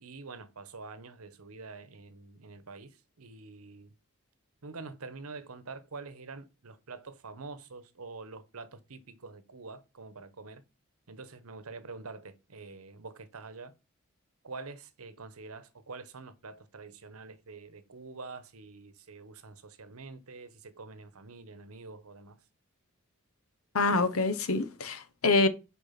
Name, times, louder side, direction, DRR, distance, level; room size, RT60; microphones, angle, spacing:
voice 1, 0.0-2.9 3.2-3.9 4.6-10.6 11.1-13.7 14.4-22.4, right 3 dB, 90° right, 1.0 m, -46 dB
voice 2, 23.7-25.5, left 3 dB, 85° left, 1.0 m, -26 dB
6.9 x 4.6 x 5.8 m
head